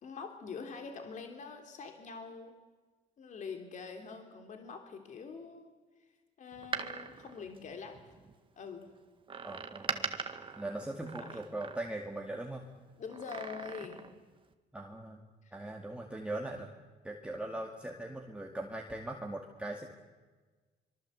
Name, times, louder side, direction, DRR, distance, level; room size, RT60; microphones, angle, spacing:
voice 1, 0.0-2.5 3.2-5.7 6.4-8.0 8.6-8.9 11.3-11.4 13.0-14.0 15.4-15.5, left 5 dB, 45° left, 5 dB, 3.1 m, -44 dB
Door, 6.5-8.3 9.3-12.2 13.1-14.2 14.5-14.6, right 5 dB, 30° right, 1.8 m, -41 dB
voice 2, 9.4-10.2 10.5-12.6 14.7-15.2 15.5-16.7 17.0-19.9, right 1 dB, 5° right, 1 dB, 2.2 m, -40 dB
25.5 x 23.0 x 8.1 m, 1.3 s
cardioid pair, 110°, 17 cm